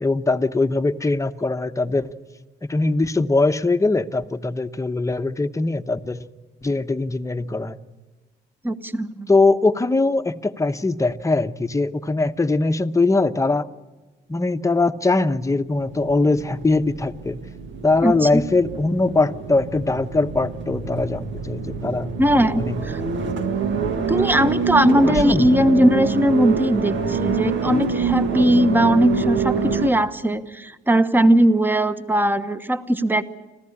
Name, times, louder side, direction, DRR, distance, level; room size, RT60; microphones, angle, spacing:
voice 1, 0.0-2.1 2.6-6.2 6.6-7.8 9.3-13.7 14.3-17.4 17.8-22.1 22.6-22.8 25.1-25.5, left 3 dB, 15° left, 9 dB, 1.0 m, -21 dB
voice 2, 8.6-9.3 18.0-18.4 22.2-23.0 24.1-33.2, equal, 10° right, 12 dB, 1.1 m, -19 dB
sound 1, 15.7-29.9, right 5 dB, 70° right, 1.9 m, -26 dB
26.0 x 15.0 x 9.9 m, 1.2 s
cardioid pair, 90°, 20 cm